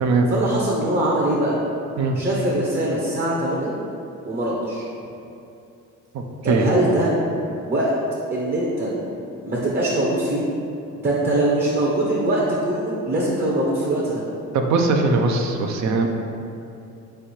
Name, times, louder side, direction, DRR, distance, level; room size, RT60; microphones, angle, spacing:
voice 1, 0.3-1.6 2.1-3.7 4.2-4.8 6.4-7.1 7.7-7.9 8.3-8.9 9.5-10.4 11.0-14.2, right 1 dB, 35° right, -5 dB, 0.8 m, -22 dB
voice 2, 14.5-16.1, right 3 dB, 65° right, 3 dB, 0.6 m, -20 dB
3.7 x 3.3 x 4.3 m, 2.7 s
cardioid pair, 90°, 30 cm